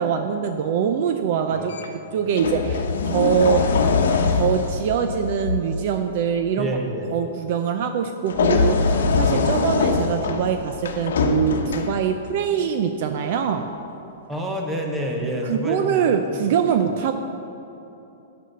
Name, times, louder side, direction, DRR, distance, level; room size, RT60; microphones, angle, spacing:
voice 1, 0.0-1.7 2.1-3.8 4.3-6.8 7.1-13.7 15.4-17.1, right 8 dB, 45° right, 7 dB, 0.4 m, -23 dB
voice 2, 1.5-1.8 2.7-2.8 6.6-7.2 14.3-16.0 16.4-16.5, equal, 10° right, 1 dB, 0.9 m, -28 dB
sound 1, 1.7-1.9 2.4-5.8 8.3-12.3 13.3-13.5, left 4 dB, 85° left, 0.9 m, -22 dB
9.3 x 6.1 x 6.7 m, 2.9 s
hypercardioid pair, 165°, 0 cm